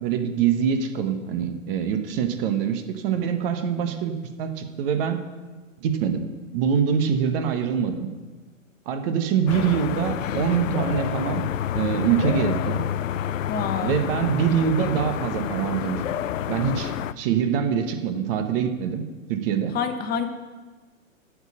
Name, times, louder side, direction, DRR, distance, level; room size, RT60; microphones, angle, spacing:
voice 1, 0.0-5.2 5.8-8.1 8.9-11.5 11.7-12.8 13.8-16.0 16.5-19.0 19.3-19.8, right 7 dB, 45° right, 7 dB, 1.2 m, -24 dB
sound 1, 9.5-17.1, left 10 dB, 70° left, 0.6 m, -28 dB
voice 2, 13.5-14.0 19.7-20.3, left 6 dB, 25° left, 7 dB, 1.1 m, -27 dB
8.0 x 7.3 x 8.6 m, 1.3 s
hypercardioid pair, 115°, 40 cm